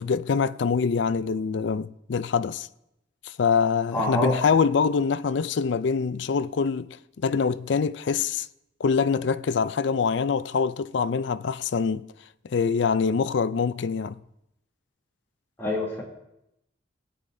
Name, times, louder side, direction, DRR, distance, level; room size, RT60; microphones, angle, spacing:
voice 1, 0.0-2.7 3.2-8.5 8.8-12.1 12.4-14.2, left 5 dB, 70° left, 0.4 m, -24 dB
voice 2, 3.9-4.3 15.6-16.0, left 1 dB, 15° left, 2.8 m, -26 dB
19.0 x 9.3 x 2.7 m
head